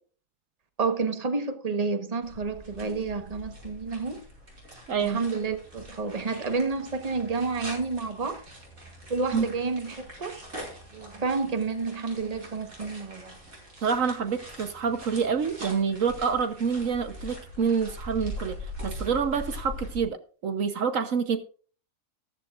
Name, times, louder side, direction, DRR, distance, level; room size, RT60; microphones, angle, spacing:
voice 1, 0.8-4.2 5.0-8.4 9.1-10.4 10.9-13.4, right 4 dB, 30° right, 1.3 m, -30 dB
sound 1, 2.2-20.0, equal, 90° right, 5.8 m, -42 dB
voice 2, 4.9-5.2 9.3-9.5 13.8-18.6 18.8-21.4, right 6 dB, 70° right, 1.4 m, -27 dB
14.5 x 13.5 x 2.5 m
omnidirectional pair, 1.4 m